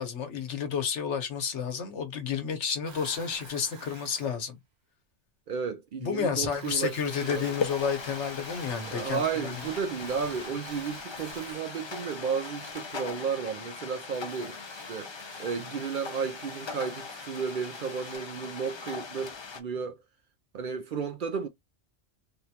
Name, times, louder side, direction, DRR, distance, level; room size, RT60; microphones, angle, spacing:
voice 1, 0.0-4.6 6.0-9.5, left 6 dB, 85° left, 1.2 m, -31 dB
sound 1, 2.9-4.4 6.5-13.3 14.1-18.2, right 3 dB, 40° right, 1.0 m, -49 dB
voice 2, 5.5-7.5 8.8-15.1 15.4-20.0 20.5-21.5, right 6 dB, 60° right, 0.6 m, -33 dB
sound 2, 7.1-19.6, left 5 dB, 40° left, 0.4 m, -40 dB
3.5 x 2.2 x 2.8 m
omnidirectional pair, 1.2 m